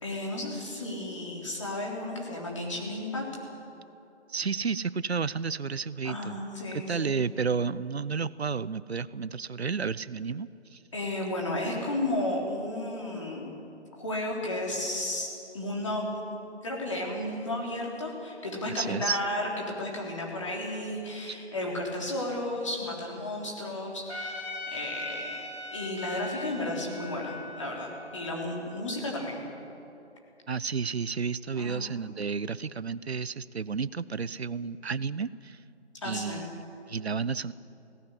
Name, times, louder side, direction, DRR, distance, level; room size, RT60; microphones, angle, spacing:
voice 1, 0.0-3.3 6.0-7.1 10.9-13.5 14.0-16.1 16.6-19.5 19.8-29.4 31.5-31.8 36.0-36.5, left 1 dB, 25° left, -2 dB, 3.6 m, -33 dB
voice 2, 4.3-6.4 6.7-10.8 18.8-19.2 21.3-21.4 30.5-35.6 36.0-37.5, right 5 dB, 65° right, 18 dB, 0.7 m, -32 dB
Trumpet, 24.1-29.3, left 2 dB, 65° left, 3.9 m, -41 dB
18.0 x 17.5 x 9.9 m, 2.8 s
figure-of-eight pair, 175°, 35 cm